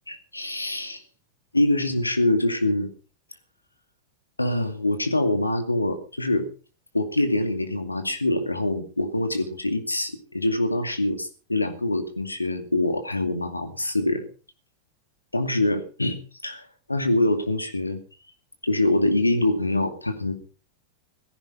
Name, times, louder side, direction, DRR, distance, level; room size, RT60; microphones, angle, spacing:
voice 1, 0.1-1.0 1.5-2.9 4.4-6.5 6.9-14.2 15.3-18.0 18.6-20.3, left 1 dB, 85° left, 8 dB, 2.3 m, -24 dB
17.0 x 15.5 x 4.1 m, 0.37 s
figure-of-eight pair, 90°, 0 cm